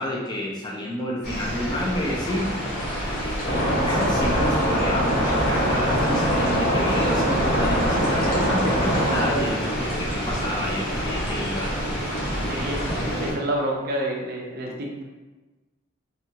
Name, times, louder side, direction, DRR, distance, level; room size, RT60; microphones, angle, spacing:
voice 1, 0.0-2.5 3.2-11.9 12.3-12.7, left 1 dB, 20° left, -3 dB, 0.3 m, -29 dB
sound 1, 1.2-13.3, equal, 90° left, 1.3 m, -28 dB
sound 2, 2.2-13.0, equal, 65° left, 0.9 m, -38 dB
sound 3, 3.4-9.3, equal, 45° left, 0.7 m, -23 dB
voice 2, 12.5-15.0, right 1 dB, 50° right, -1 dB, 0.5 m, -29 dB
2.7 x 2.2 x 2.7 m, 1.2 s
head